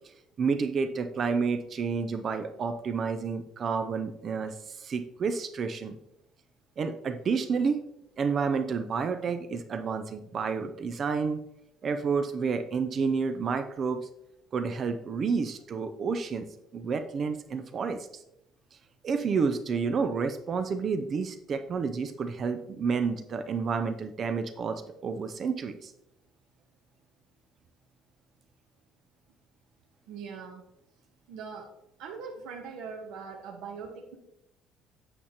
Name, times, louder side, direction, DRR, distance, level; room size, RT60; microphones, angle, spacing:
voice 1, 0.4-6.0 6.8-7.8 8.2-11.4 11.8-14.1 14.5-16.5 16.7-18.2 19.0-25.9, right 5 dB, 30° right, 9 dB, 0.4 m, -30 dB
voice 2, 30.1-30.6 31.3-31.7 32.0-34.2, right 5 dB, 85° right, 0 dB, 1.0 m, -41 dB
8.5 x 6.7 x 2.8 m, 0.82 s
cardioid pair, 170°, 0 cm